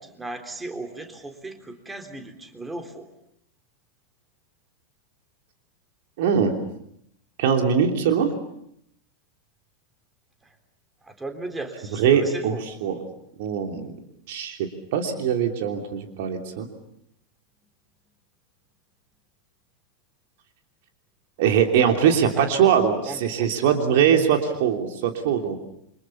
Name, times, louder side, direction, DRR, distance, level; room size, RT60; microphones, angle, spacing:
voice 1, 0.0-3.1 10.4-10.5 11.0-12.6 22.3-22.5 23.0-23.5, right 2 dB, 10° right, 5 dB, 3.6 m, -36 dB
voice 2, 6.2-6.5 7.4-8.3 12.0-13.0 13.4-13.9 14.3-14.6 14.9-16.7 21.4-25.6, right 8 dB, 50° right, 4 dB, 3.1 m, -21 dB
29.0 x 25.5 x 7.1 m, 0.76 s
figure-of-eight pair, 90°, 0 cm